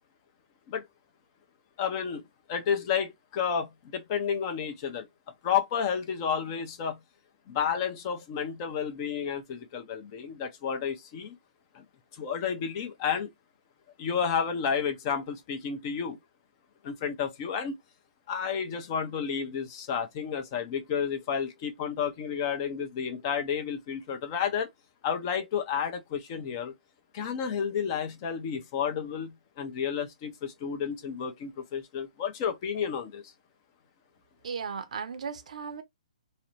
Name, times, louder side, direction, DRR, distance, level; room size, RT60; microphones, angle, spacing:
voice 1, 1.8-2.2 2.5-7.0 7.5-11.4 11.7-11.8 12.1-13.3 14.0-16.2 16.8-17.8 18.3-24.7 25.0-26.7 27.1-33.3, left 7 dB, 35° left, 0.6 m, -31 dB
voice 2, 34.4-35.8, right 6 dB, 60° right, 0.5 m, -36 dB
2.8 x 2.0 x 2.6 m
figure-of-eight pair, 135°, 4 cm